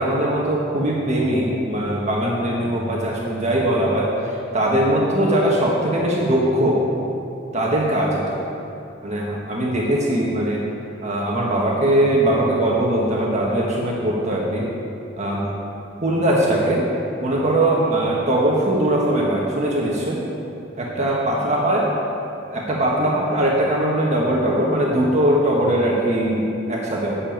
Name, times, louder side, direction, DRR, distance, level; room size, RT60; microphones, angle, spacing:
voice 1, 0.0-6.8 7.5-8.4 9.0-10.6 11.0-14.6 15.2-15.5 16.0-16.9 17.2-20.2 20.8-21.9 22.5-27.2, right 1 dB, 40° right, -4 dB, 1.5 m, -20 dB
8.7 x 7.0 x 8.8 m, 2.7 s
head